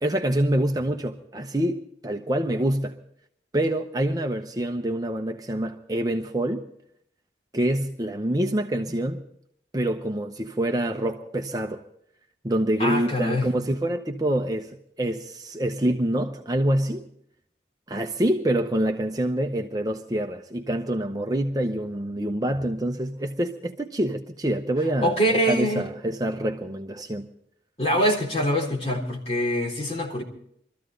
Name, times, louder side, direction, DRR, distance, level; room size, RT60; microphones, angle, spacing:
voice 1, 0.0-3.0 3.5-6.6 7.5-9.2 9.7-11.8 12.4-17.0 17.9-27.3, right 1 dB, 20° right, 0.7 m, -26 dB
voice 2, 12.8-13.5 25.0-25.8 27.8-30.2, equal, 35° left, 3.7 m, -24 dB
23.5 x 14.0 x 3.9 m
head